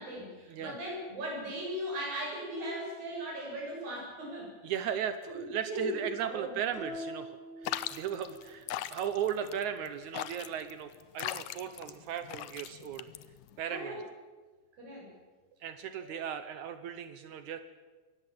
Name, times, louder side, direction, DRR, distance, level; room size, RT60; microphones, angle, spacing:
voice 1, 0.0-4.6 5.3-6.6 13.7-14.0 14.8-15.1, right 1 dB, 55° right, -2 dB, 8.9 m, -38 dB
voice 2, 4.6-13.1 13.6-13.9 15.6-17.6, right 9 dB, 80° right, 10 dB, 1.7 m, -36 dB
sound 1, 6.7-8.5, equal, 70° left, 9.6 m, -44 dB
sound 2, 7.6-13.6, left 13 dB, 90° left, 1.8 m, -39 dB
23.0 x 18.5 x 7.6 m, 1.3 s
omnidirectional pair, 4.8 m